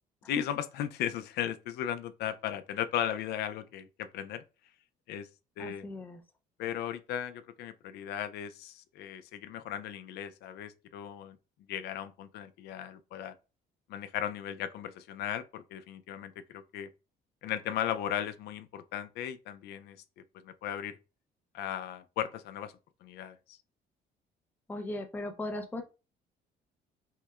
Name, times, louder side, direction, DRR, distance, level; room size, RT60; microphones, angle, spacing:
voice 1, 0.3-4.4 5.1-5.3 5.6-5.9 6.6-11.4 11.7-13.3 13.9-16.9 17.4-20.0 20.4-21.0 21.5-22.7 23.0-23.6, left 10 dB, 75° left, 0.4 m, -36 dB
voice 2, 5.6-6.2 24.7-25.8, left 1 dB, 10° left, 0.5 m, -38 dB
5.6 x 2.1 x 2.3 m
cardioid pair, 110°, 17 cm